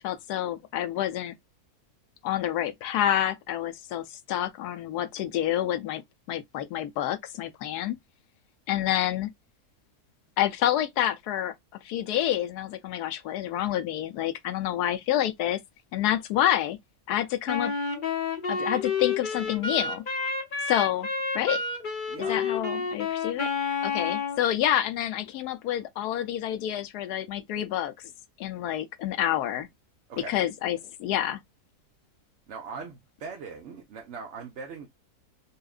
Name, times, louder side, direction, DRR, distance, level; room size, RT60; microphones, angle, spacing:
voice 1, 0.0-1.3 2.2-6.0 6.3-8.0 8.7-9.3 10.4-11.5 11.8-15.6 15.9-16.8 17.1-17.7 18.5-20.0 20.7-21.1 21.3-21.6 22.2-28.1 28.4-29.7 30.3-31.4, left 12 dB, 85° left, 1.1 m, -28 dB
Wind instrument woodwind instrument, 17.5-24.4, left 4 dB, 40° left, 0.8 m, -30 dB
voice 2, 22.1-22.4 30.1-30.3 32.5-34.9, right 5 dB, 55° right, 0.9 m, -40 dB
5.5 x 2.5 x 2.3 m
omnidirectional pair, 1.7 m